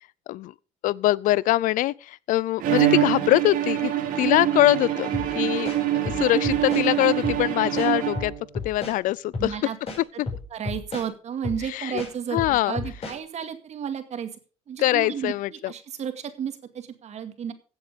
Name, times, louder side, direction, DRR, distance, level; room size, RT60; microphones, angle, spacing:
voice 1, 0.8-5.7 6.2-8.3 8.6-9.6 10.2-10.3 11.6-12.0 12.3-12.8 14.8-15.7, left 16 dB, 60° left, 0.5 m, -23 dB
Bowed string instrument, 2.6-8.6, right 12 dB, 70° right, 3.2 m, -25 dB
sound 1, 5.1-5.3 5.6-6.9 7.2-7.4 7.8-9.0 9.3-9.5 9.9-11.1 11.4-11.6 12.0-13.2, left 3 dB, 40° left, 5.7 m, -32 dB
voice 2, 9.4-9.8 10.5-14.3 14.7-15.3 15.7-17.5, right 8 dB, 50° right, 2.2 m, -32 dB
15.5 x 7.8 x 5.1 m
supercardioid pair, 90°, 15 cm